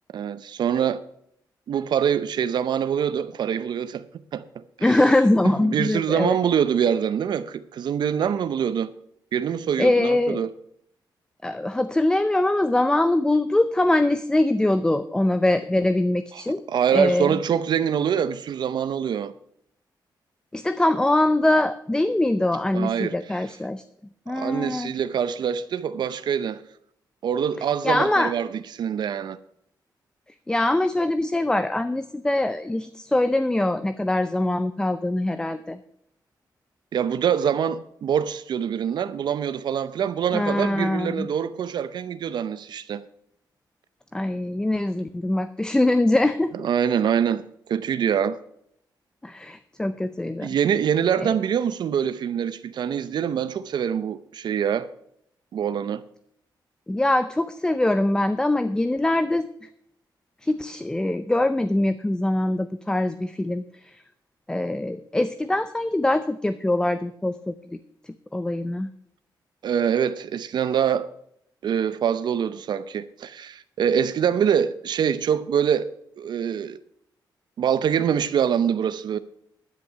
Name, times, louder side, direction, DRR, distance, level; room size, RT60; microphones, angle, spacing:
voice 1, 0.1-1.0 1.7-4.0 4.3-4.4 4.8-5.0 5.7-8.9 9.3-10.5 16.3-16.4 16.7-19.3 22.7-23.2 24.3-26.6 27.2-28.5 28.7-29.4 36.9-43.0 46.6-47.4 47.7-48.4 50.4-54.9 55.5-56.0 69.6-71.1 71.6-75.9 76.2-76.8 77.6-79.2, right 8 dB, 70° right, 0.7 m, -24 dB
voice 2, 4.8-6.4 9.8-10.4 11.4-16.6 16.9-17.4 20.5-23.8 24.3-24.9 27.8-28.3 30.5-35.8 40.3-41.3 44.1-46.5 49.2-50.5 51.2-51.3 56.9-59.7 60.4-64.0 64.5-67.5 68.3-68.9, left 1 dB, 10° left, 0.5 m, -23 dB
10.5 x 10.0 x 5.7 m
wide cardioid pair, 125°, 8 cm